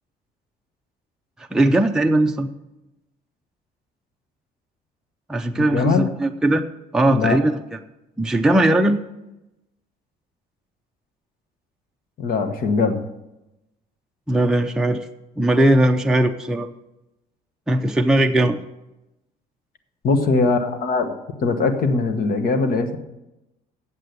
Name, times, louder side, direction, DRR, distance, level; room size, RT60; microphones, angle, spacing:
voice 1, 1.5-2.5 5.3-6.6 6.9-7.6 8.2-9.0 14.3-15.1 15.4-16.7 17.7-18.6, right 1 dB, 5° right, 3 dB, 0.5 m, -19 dB
voice 2, 5.5-6.1 7.1-7.4 12.2-13.0 20.0-21.1 21.4-23.0, left 4 dB, 60° left, 8 dB, 1.3 m, -21 dB
8.3 x 7.5 x 8.0 m, 0.95 s
cardioid pair, 110°, 17 cm